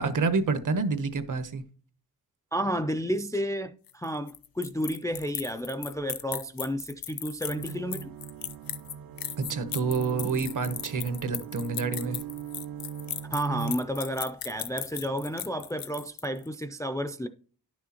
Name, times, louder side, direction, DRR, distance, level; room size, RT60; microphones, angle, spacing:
voice 1, 0.0-1.6 9.4-12.2, right 4 dB, 55° right, 0.9 m, -28 dB
voice 2, 2.5-8.1 13.3-17.3, equal, 10° left, 0.3 m, -31 dB
sound 1, 3.9-16.5, left 10 dB, 70° left, 0.6 m, -37 dB
sound 2, 7.5-13.7, right 8 dB, 75° right, 0.5 m, -40 dB
10.5 x 6.2 x 2.9 m
wide cardioid pair, 145°, 37 cm